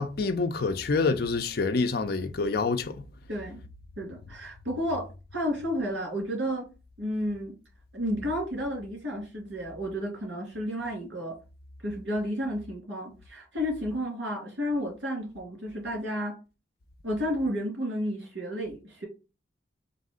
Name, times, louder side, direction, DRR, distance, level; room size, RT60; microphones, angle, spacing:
voice 1, 0.0-3.0, left 4 dB, 55° left, 0.5 m, -27 dB
voice 2, 3.3-3.6 4.0-6.7 7.0-7.6 7.9-11.3 11.8-16.3 17.0-19.1, equal, 85° right, 2.4 m, -32 dB
4.0 x 2.6 x 3.7 m
head